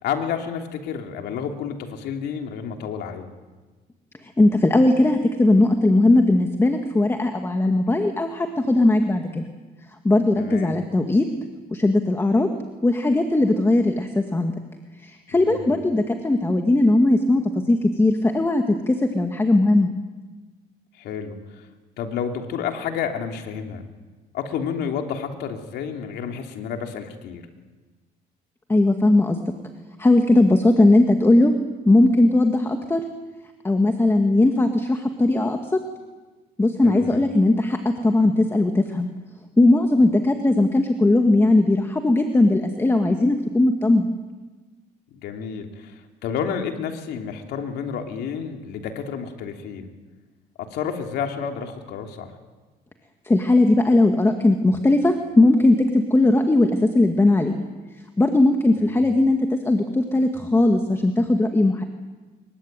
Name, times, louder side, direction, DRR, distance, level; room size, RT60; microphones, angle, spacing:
voice 1, 0.0-3.2 10.4-10.7 15.3-15.7 21.0-21.7 22.0-23.8 24.3-27.5 36.8-37.2 45.2-49.9 50.6-52.3 58.8-59.0, left 7 dB, 75° left, 4 dB, 3.4 m, -30 dB
voice 2, 4.2-9.4 10.0-11.2 11.7-12.5 12.8-14.5 15.0-17.4 17.7-19.9 28.7-29.4 30.0-31.5 31.9-33.0 33.6-35.6 36.6-39.1 39.6-44.1 53.3-57.5 58.2-61.8, left 2 dB, 15° left, 5 dB, 2.1 m, -18 dB
26.0 x 23.0 x 9.2 m, 1.3 s
cardioid pair, 110°, 17 cm